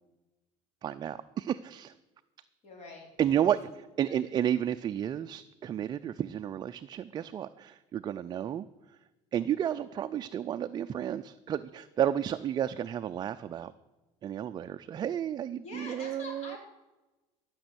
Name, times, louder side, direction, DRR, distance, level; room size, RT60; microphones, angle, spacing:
voice 1, 0.8-1.9 3.2-8.7 9.3-13.7 14.2-16.6, right 10 dB, 30° right, 10 dB, 0.4 m, -32 dB
voice 2, 2.6-3.1 3.4-3.6 4.0-4.2 15.6-16.6, left 2 dB, 50° left, 0 dB, 4.3 m, -45 dB
14.5 x 6.1 x 8.0 m, 1.1 s
cardioid pair, 130°, 15 cm